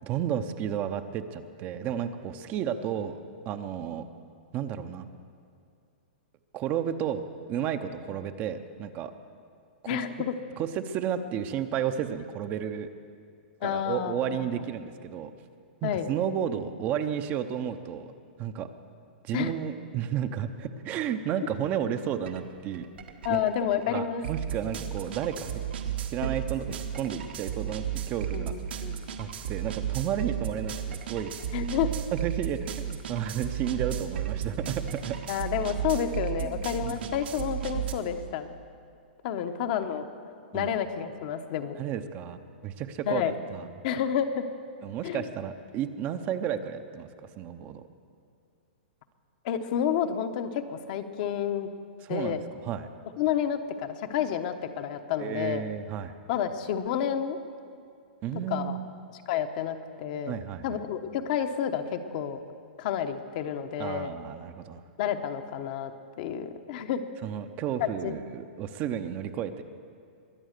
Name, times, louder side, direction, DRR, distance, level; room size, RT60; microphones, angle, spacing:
voice 1, 0.0-4.0 4.5-5.1 6.5-7.2 7.5-9.1 9.8-10.0 10.6-12.9 13.6-15.3 15.8-18.1 18.4-18.7 19.2-22.8 23.3-26.6 26.9-28.8 29.2-31.3 32.1-35.2 36.4-37.2 40.5-40.7 41.8-43.2 43.5-43.7 44.8-47.1 47.4-47.9 52.0-52.9 55.2-56.1 58.2-58.9 60.3-60.8 63.8-64.8 67.2-69.6, right 9 dB, 30° right, 9 dB, 0.7 m, -32 dB
voice 2, 9.8-10.4 13.6-14.5 15.8-16.1 19.3-19.5 23.2-24.2 26.2-26.3 28.3-29.1 31.5-32.0 35.3-38.5 39.2-40.1 40.5-41.8 43.1-43.4 43.8-44.5 45.0-45.2 49.4-51.7 52.1-52.4 53.2-55.7 56.3-57.4 58.5-58.8 59.3-62.4 62.8-64.2 65.0-67.0 68.0-68.2, left 9 dB, 50° left, 7 dB, 1.0 m, -30 dB
sound 1, 22.3-22.4 22.7-37.9, right 10 dB, 75° right, 1.6 m, -34 dB
22.5 x 8.8 x 6.7 m, 2.3 s
hypercardioid pair, 150°, 6 cm